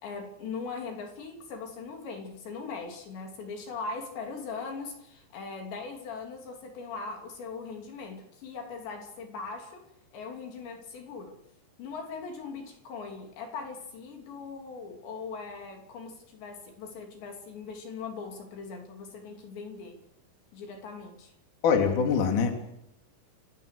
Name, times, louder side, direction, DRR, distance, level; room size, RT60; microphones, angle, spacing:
voice 1, 0.0-9.8 10.1-11.4 11.8-20.0 20.5-21.3, left 4 dB, 60° left, 4 dB, 5.0 m, -40 dB
voice 2, 21.6-22.5, left 6 dB, 45° left, 3 dB, 4.0 m, -23 dB
29.0 x 17.5 x 6.6 m, 0.80 s
omnidirectional pair, 5.8 m